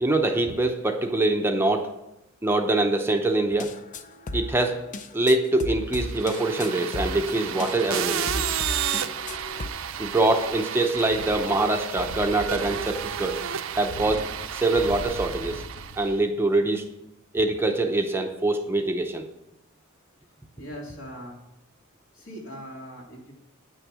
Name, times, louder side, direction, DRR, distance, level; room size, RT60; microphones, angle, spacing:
voice 1, 0.0-1.9 2.4-3.8 4.3-4.8 5.1-8.5 10.0-13.4 13.7-15.7 16.0-16.9 17.3-19.3, right 2 dB, 10° right, 4 dB, 0.6 m, -24 dB
sound 1, 3.5-9.7, left 1 dB, 40° left, 0.6 m, -35 dB
sound 2, 6.0-16.1, right 9 dB, 70° right, 0.5 m, -32 dB
sound 3, 9.2-10.6 10.9-16.2 16.5-16.6, equal, 85° left, 1.2 m, -41 dB
voice 2, 20.5-21.4 22.1-23.3, equal, 70° left, -2 dB, 2.8 m, -40 dB
9.1 x 6.4 x 6.1 m, 0.91 s
head